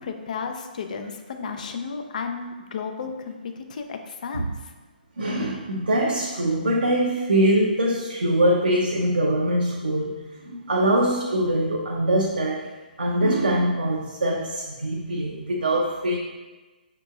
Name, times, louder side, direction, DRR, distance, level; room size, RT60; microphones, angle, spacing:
voice 1, 0.0-4.7, left 5 dB, 50° left, 5 dB, 0.4 m, -33 dB
voice 2, 5.2-12.7 13.0-16.2, right 1 dB, 75° right, -2 dB, 0.5 m, -23 dB
5.5 x 2.8 x 2.3 m, 1.2 s
figure-of-eight pair, 130°, 5 cm